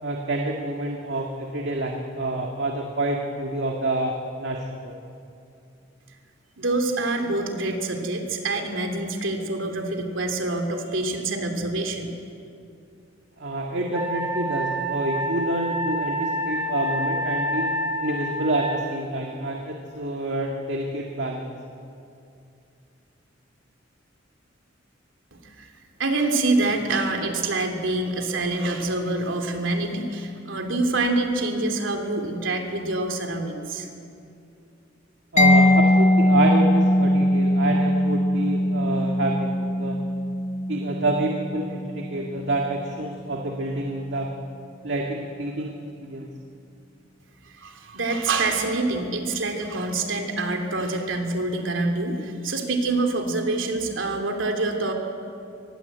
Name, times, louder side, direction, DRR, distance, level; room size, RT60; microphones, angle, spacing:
voice 1, 0.0-4.9 13.4-17.7 18.0-21.5 35.3-40.0 40.7-44.4 44.8-45.7 46.0-46.3, right 1 dB, 65° right, 1 dB, 2.0 m, -28 dB
voice 2, 6.6-12.1 25.4-25.7 26.0-33.9 47.6-54.9, right 2 dB, 85° right, 4 dB, 3.0 m, -26 dB
Wind instrument woodwind instrument, 13.9-18.8, right 1 dB, 15° right, 5.0 m, -28 dB
Mallet percussion, 35.4-42.9, left 1 dB, 40° left, 1.3 m, -21 dB
25.5 x 19.5 x 8.2 m, 2.6 s
head